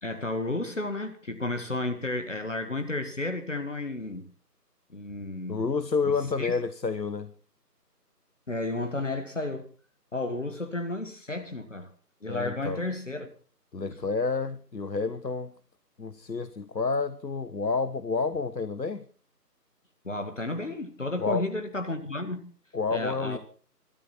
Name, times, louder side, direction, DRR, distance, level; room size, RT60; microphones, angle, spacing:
voice 1, 0.0-4.3 4.9-5.6 6.4-6.5 8.5-9.7 10.1-11.9 12.2-13.3 13.9-14.0 20.0-22.5 22.9-23.4, left 2 dB, 50° left, 1.9 m, -32 dB
voice 2, 5.5-7.3 12.3-12.8 13.7-15.5 16.0-19.1 21.2-21.4 22.7-23.4, left 4 dB, 80° left, 1.3 m, -29 dB
24.0 x 13.0 x 4.4 m
figure-of-eight pair, 170°, 49 cm